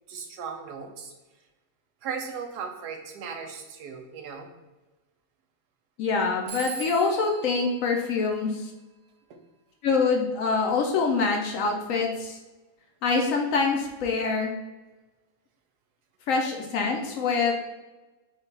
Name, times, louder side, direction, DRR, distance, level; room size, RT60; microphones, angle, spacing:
voice 1, 0.1-1.1 2.0-4.5, right 6 dB, 85° right, 4 dB, 1.3 m, -37 dB
voice 2, 6.0-8.7 9.8-12.4 13.0-14.5 16.3-17.5, left 4 dB, 65° left, 2 dB, 0.9 m, -25 dB
Telephone, 6.5-9.0, right 7 dB, 70° right, 0.9 m, -42 dB
5.3 x 2.3 x 3.8 m, 1.2 s
omnidirectional pair, 1.7 m